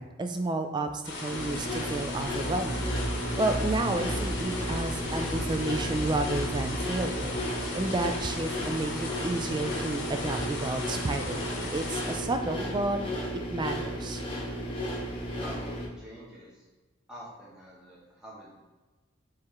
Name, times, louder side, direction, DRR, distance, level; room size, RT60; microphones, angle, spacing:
voice 1, 0.0-2.8 3.4-7.4 7.7-13.0 13.5-14.2, right 2 dB, 25° right, 6 dB, 0.3 m, -31 dB
sound 1, 1.0-12.2, left 2 dB, 65° left, 1.0 m, -38 dB
sound 2, 1.3-15.9, equal, 30° left, 0.8 m, -34 dB
sound 3, 2.3-9.6, right 1 dB, 55° right, 0.7 m, -37 dB
voice 2, 15.4-16.7 17.1-18.5, equal, 5° right, -7 dB, 1.0 m, -46 dB
4.6 x 3.1 x 3.6 m, 1.2 s
head